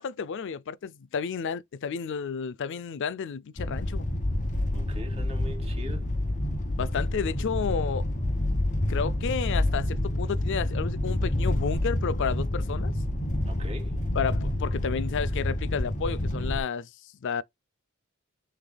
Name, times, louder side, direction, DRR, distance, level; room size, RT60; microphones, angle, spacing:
voice 1, 0.0-4.1 6.8-8.1 8.9-12.9 14.1-16.9 17.2-17.4, left 6 dB, 60° left, 0.4 m, -31 dB
sound 1, 3.6-16.6, left 1 dB, 35° left, 1.3 m, -28 dB
voice 2, 4.7-6.1 13.4-14.2, left 1 dB, 30° right, 2.3 m, -42 dB
6.8 x 3.4 x 2.2 m
head